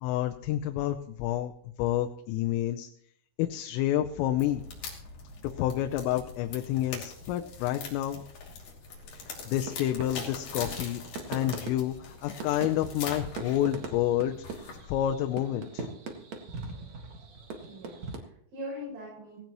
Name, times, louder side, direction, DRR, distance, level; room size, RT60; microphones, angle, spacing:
voice 1, 0.0-1.5 1.8-2.9 3.4-4.6 5.4-8.2 9.1-11.0 11.3-15.9, left 12 dB, 90° left, 5 dB, 3.4 m, -29 dB
sound 1, 4.3-15.1, left 4 dB, 50° left, 4.1 m, -43 dB
sound 2, 9.0-18.2, right 4 dB, 60° right, 1.8 m, -41 dB
voice 2, 17.7-19.4, equal, 80° right, -6 dB, 10.0 m, -42 dB
18.5 x 17.0 x 3.1 m, 0.68 s
omnidirectional pair, 5.7 m